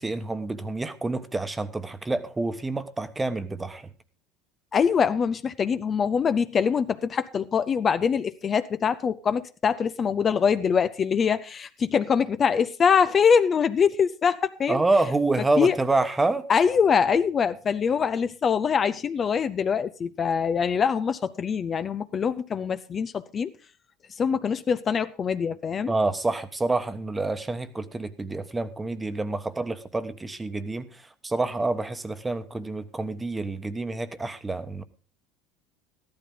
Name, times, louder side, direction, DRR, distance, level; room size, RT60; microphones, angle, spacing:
voice 1, 0.0-3.9 14.7-16.5 25.9-34.8, right 2 dB, 15° right, 1.2 m, -27 dB
voice 2, 4.7-14.8 15.6-15.8 16.5-23.5 24.2-25.9, left 6 dB, 35° left, 0.6 m, -24 dB
13.5 x 12.5 x 3.8 m
supercardioid pair, 95°, 0 cm